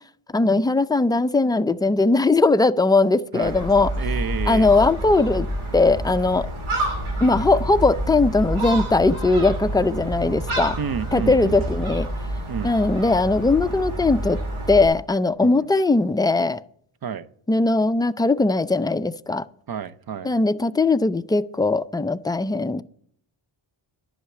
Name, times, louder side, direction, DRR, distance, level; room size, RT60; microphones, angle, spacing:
voice 1, 0.3-3.9 4.5-5.5 5.7-6.5 7.2-10.8 11.1-12.1 12.6-14.4 14.7-16.6 17.5-19.4 20.2-22.8, left 3 dB, 10° left, 0.4 m, -19 dB
Gull seagull, 3.4-14.9, right 1 dB, 75° right, 3.2 m, -28 dB
voice 2, 4.0-4.7 10.8-11.8 12.5-12.8 15.4-15.7 17.0-17.3 19.7-20.3, right 7 dB, 45° right, 0.7 m, -30 dB
11.0 x 5.7 x 8.3 m
cardioid pair, 70°, 50 cm